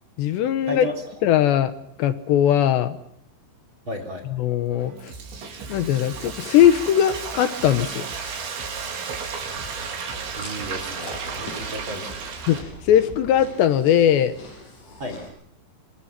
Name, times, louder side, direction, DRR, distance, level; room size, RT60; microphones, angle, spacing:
voice 1, 0.2-0.9 1.2-1.7 2.0-3.0 4.3-5.1 5.7-8.1 12.5-12.6 12.8-14.3, left 10 dB, 75° left, 11 dB, 3.2 m, -19 dB
voice 2, 3.9-4.3 9.6-9.8 10.3-12.4 15.0-15.2, equal, 30° right, 3 dB, 3.6 m, -33 dB
Frying (food), 4.7-12.6, right 5 dB, 70° right, 5.8 m, -34 dB
sound 1, 4.8-13.4, right 3 dB, 90° right, 6.8 m, -43 dB
Chewing mastication, 9.4-15.3, left 2 dB, 45° left, 7.4 m, -43 dB
27.0 x 26.5 x 5.9 m, 0.69 s
omnidirectional pair, 5.3 m